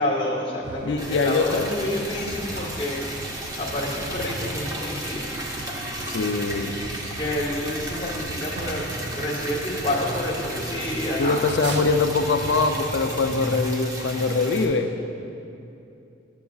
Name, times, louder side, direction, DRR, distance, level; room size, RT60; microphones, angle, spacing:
voice 1, 0.0-3.0 3.6-5.3 7.2-11.9, left 1 dB, 30° left, -6 dB, 0.9 m, -29 dB
sound 1, 0.6-13.6, right 3 dB, 65° right, 0.4 m, -39 dB
voice 2, 0.8-1.7 6.1-6.8 11.2-15.0, left 4 dB, 75° left, 7 dB, 0.4 m, -23 dB
Liquid, 1.0-14.6, right 1 dB, 20° right, 0.8 m, -33 dB
11.5 x 7.0 x 2.4 m, 2.7 s
head